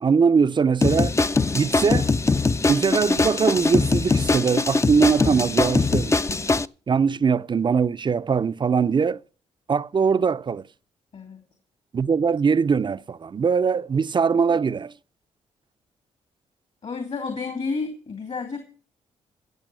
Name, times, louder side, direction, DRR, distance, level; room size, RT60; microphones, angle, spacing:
voice 1, 0.0-1.1 1.5-2.1 2.7-6.2 6.9-9.2 9.7-10.6 11.9-14.9, right 5 dB, 35° right, 0.5 m, -21 dB
sound 1, 0.8-6.7, left 3 dB, 20° left, 0.5 m, -22 dB
voice 2, 11.1-11.4 16.8-18.6, left 4 dB, 55° left, 2.6 m, -31 dB
14.5 x 8.0 x 6.1 m
supercardioid pair, 55°, 13 cm